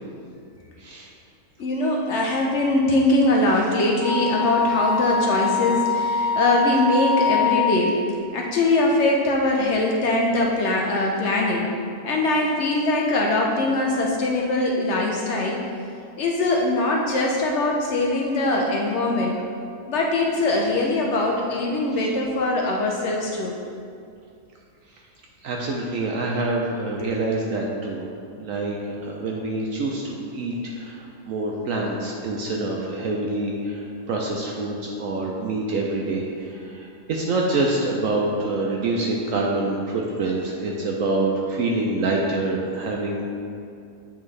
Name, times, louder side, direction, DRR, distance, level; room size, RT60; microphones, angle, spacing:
voice 1, 1.6-8.0 8.3-11.6 12.0-15.6 16.2-19.4 19.9-23.5 27.0-27.1, left 2 dB, 65° left, -1 dB, 0.7 m, -22 dB
Wind instrument woodwind instrument, 4.0-7.9, left 4 dB, 5° left, 1.0 m, -23 dB
voice 2, 25.4-28.0 28.4-28.8 29.0-43.2, right 2 dB, 70° right, -1 dB, 0.9 m, -26 dB
8.4 x 3.5 x 3.2 m, 2.4 s
omnidirectional pair, 1.6 m